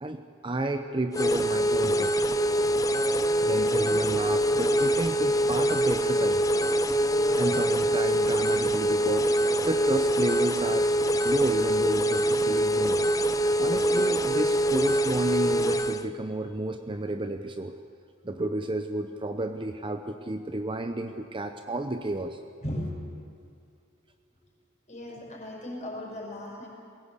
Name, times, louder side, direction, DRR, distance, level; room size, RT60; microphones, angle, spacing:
voice 1, 0.0-2.2 3.0-3.1 3.4-6.5 7.3-13.0 13.6-17.8 18.2-22.4, right 2 dB, 25° right, 7 dB, 0.7 m, -31 dB
sound 1, 1.1-16.1, right 1 dB, 15° left, 0.5 m, -24 dB
voice 2, 22.6-23.0 23.4-23.5 24.9-26.7, left 1 dB, 35° left, -2 dB, 6.1 m, -36 dB
21.0 x 17.0 x 8.3 m, 2.2 s
head